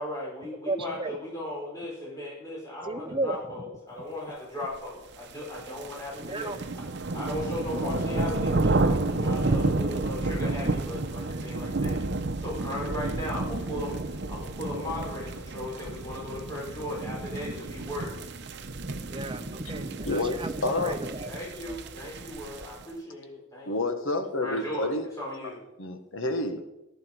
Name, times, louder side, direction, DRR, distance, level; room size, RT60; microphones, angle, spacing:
voice 1, 0.0-6.6 7.1-12.0 12.4-18.2 20.8-21.0 21.3-23.9 24.4-25.6, left 1 dB, 15° left, -5 dB, 5.2 m, -37 dB
voice 2, 0.7-1.2 2.8-3.6 6.1-6.6 10.6-10.7 12.3-12.5 14.6-14.8 16.3-16.4 16.9-17.6 18.8-21.8, right 2 dB, 25° right, 8 dB, 0.8 m, -35 dB
sound 1, 5.3-22.8, right 2 dB, 60° right, 0.8 m, -31 dB
voice 3, 20.0-20.4 20.6-21.0 23.7-25.1 25.4-25.5 25.8-26.6, left 2 dB, 80° left, 6 dB, 1.6 m, -29 dB
15.0 x 11.5 x 4.6 m, 0.96 s
head